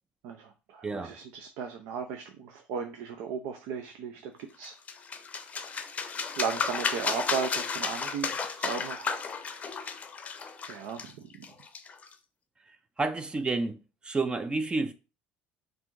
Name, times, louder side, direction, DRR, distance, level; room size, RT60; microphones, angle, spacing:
voice 1, 0.2-4.7 6.4-9.1 10.7-11.5, right 6 dB, 75° right, 0.5 m, -36 dB
voice 2, 0.8-1.2 12.7-13.8 14.0-14.9, right 3 dB, 20° right, 0.4 m, -30 dB
sound 1, 4.6-12.1, left 5 dB, 30° left, 0.6 m, -33 dB
3.3 x 2.6 x 4.5 m
supercardioid pair, 95°, 5 cm